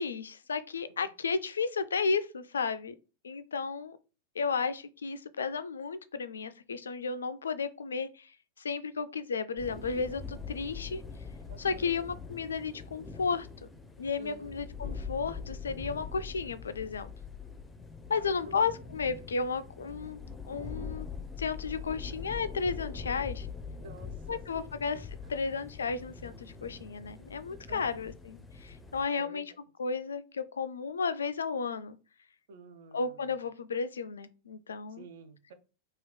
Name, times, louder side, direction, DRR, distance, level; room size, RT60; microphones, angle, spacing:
voice 1, 0.0-2.9 3.2-4.0 4.4-8.3 8.6-11.0 11.6-13.7 14.0-17.1 18.1-20.2 20.4-21.1 21.4-23.5 24.3-25.0 25.3-29.5 29.8-32.0 32.9-35.1, left 5 dB, 70° left, 0.3 m, -33 dB
sound 1, 9.6-29.1, left 5 dB, 10° left, 0.5 m, -43 dB
voice 2, 11.5-12.1 14.2-14.7 18.1-18.8 23.8-25.4 27.7-28.1 29.1-29.5 32.5-33.5 34.9-35.5, right 3 dB, 60° right, 0.6 m, -51 dB
2.8 x 2.8 x 3.1 m
figure-of-eight pair, 90°, 0 cm